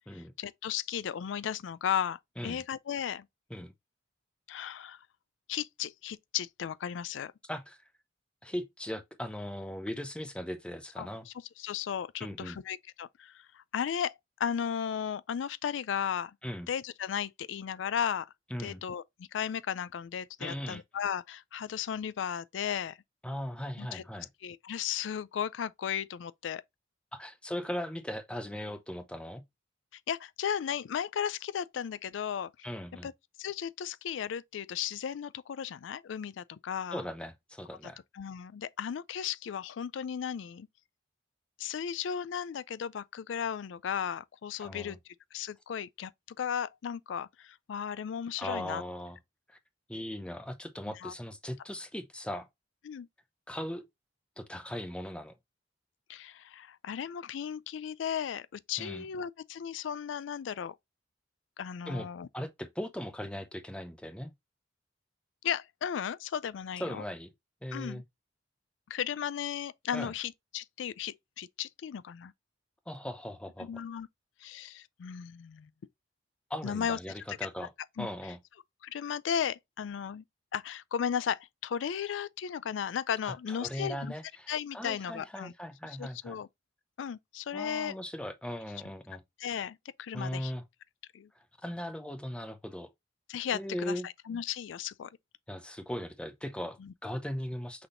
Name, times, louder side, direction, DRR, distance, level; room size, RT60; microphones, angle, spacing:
voice 1, 0.1-3.3 4.5-5.0 5.5-7.3 11.0-11.1 11.6-16.4 16.7-18.3 18.6-19.0 19.3-23.0 23.8-24.0 24.4-26.6 30.1-32.7 33.0-33.1 33.4-37.0 38.1-40.7 41.6-45.0 45.3-46.1 46.4-48.8 51.0-51.1 52.9-53.1 56.1-60.8 61.6-62.3 65.4-67.0 67.7-68.0 68.9-72.3 73.6-74.1 74.4-75.7 76.6-77.0 78.0-78.1 78.8-80.2 80.5-84.1 84.5-85.5 86.0-86.5 87.0-88.0 89.4-90.5 91.1-91.3 93.3-95.1 96.8-96.9, left 8 dB, 85° left, 0.4 m, -35 dB
voice 2, 8.4-11.3 12.2-12.6 16.4-16.7 18.5-18.8 20.4-20.8 23.2-24.3 27.1-29.4 32.6-33.1 36.9-38.0 44.6-45.0 48.4-49.2 49.5-49.6 49.9-52.5 53.5-53.9 54.4-55.4 58.8-59.1 61.9-62.1 62.3-64.3 66.8-67.3 67.6-68.0 69.9-70.1 72.9-73.8 76.5-77.7 78.0-78.4 83.2-86.4 87.5-89.2 90.1-90.6 91.6-92.9 93.5-94.1 95.5-97.9, equal, 5° left, 0.6 m, -38 dB
6.0 x 3.5 x 2.5 m
head